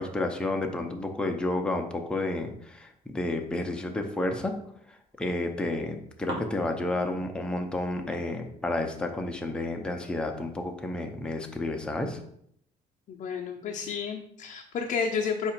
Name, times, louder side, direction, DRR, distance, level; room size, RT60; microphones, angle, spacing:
voice 1, 0.0-4.5 4.9-12.2, left 2 dB, 5° left, 3 dB, 0.5 m, -31 dB
sound 1, 2.4-4.5 5.0-5.9 6.3-11.8, right 2 dB, 30° right, 1.4 m, -47 dB
voice 2, 13.1-15.5, left 6 dB, 50° left, -1 dB, 0.6 m, -31 dB
4.8 x 2.4 x 4.4 m, 0.70 s
cardioid pair, 110°, 17 cm